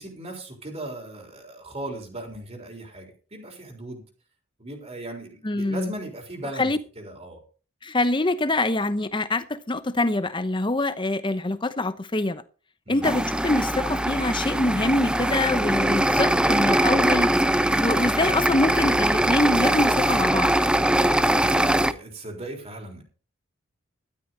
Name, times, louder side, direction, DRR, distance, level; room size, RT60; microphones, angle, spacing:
voice 1, 0.0-4.0 4.6-7.4 12.9-13.1 21.4-23.0, right 1 dB, 30° right, 3.8 m, -37 dB
voice 2, 5.4-5.9 6.6-6.8 7.8-12.4 12.9-17.3 17.7-20.5, left 2 dB, 20° left, 0.9 m, -25 dB
sound 1, 13.0-21.9, right 1 dB, 5° right, 0.5 m, -22 dB
13.0 x 13.0 x 4.0 m
head